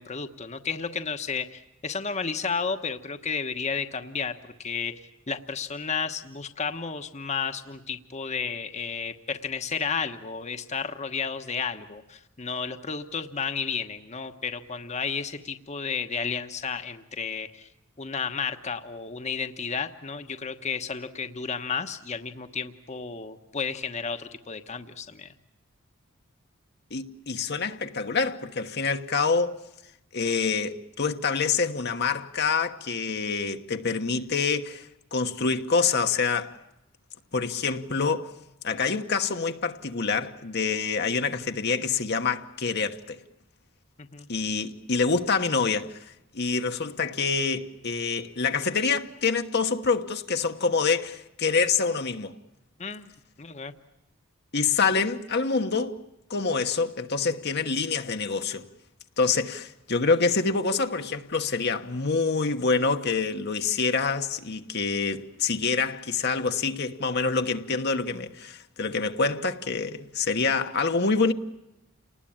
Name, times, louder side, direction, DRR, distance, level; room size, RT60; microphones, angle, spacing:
voice 1, 0.0-17.7 18.0-25.3 44.0-44.3 52.8-53.1 53.4-53.7, left 5 dB, 35° left, 1.2 m, -32 dB
voice 2, 26.9-29.6 30.1-36.6 37.3-38.3 38.6-43.2 44.3-52.3 54.5-56.0 56.3-58.7 59.2-71.3, left 4 dB, 55° left, 1.3 m, -26 dB
29.5 x 20.0 x 8.8 m
head